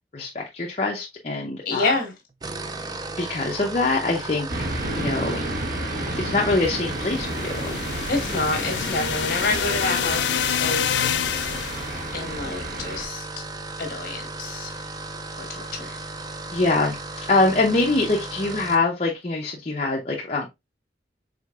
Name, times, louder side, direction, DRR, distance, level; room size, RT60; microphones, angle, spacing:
voice 1, 0.1-1.8 3.2-4.5 4.9-5.4 6.1-7.7 16.5-17.0 17.3-20.5, left 3 dB, 35° left, 0.7 m, -24 dB
voice 2, 1.6-2.1 8.1-11.8 12.1-13.3 13.8-14.8 15.4-16.0, left 3 dB, 55° left, 1.6 m, -28 dB
sound 1, 2.3-18.9, right 3 dB, 20° right, 0.4 m, -36 dB
sound 2, 4.5-13.1, right 1 dB, 60° right, 1.1 m, -31 dB
sound 3, 7.0-12.0, left 10 dB, 80° left, 0.4 m, -27 dB
5.0 x 3.7 x 2.4 m
head